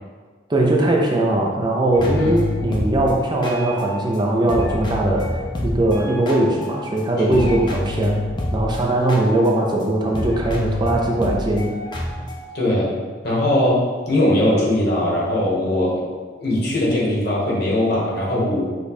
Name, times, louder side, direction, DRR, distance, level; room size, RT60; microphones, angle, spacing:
voice 1, 0.5-8.2 8.5-11.7, right 1 dB, 25° right, -1 dB, 0.4 m, -20 dB
sound 1, 1.9-4.2 4.5-7.0 7.3-12.4, left 1 dB, 25° left, 0.5 m, -27 dB
voice 2, 12.5-12.9 13.2-16.0 16.4-18.6, left 1 dB, 60° left, -5 dB, 1.3 m, -20 dB
5.1 x 2.3 x 4.1 m, 1.5 s
head